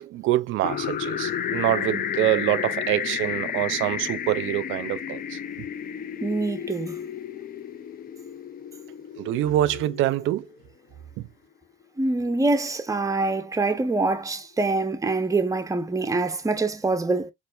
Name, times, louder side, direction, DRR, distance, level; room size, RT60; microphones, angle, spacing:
voice 1, 0.0-5.7 9.2-10.5 11.2-11.3, right 14 dB, 85° right, 0.4 m, -25 dB
sound 1, 0.6-10.5, left 9 dB, 45° left, 0.4 m, -32 dB
voice 2, 6.2-7.0 12.0-17.3, right 3 dB, 15° right, 0.7 m, -25 dB
4.3 x 2.4 x 2.4 m
cardioid pair, 90°, 20 cm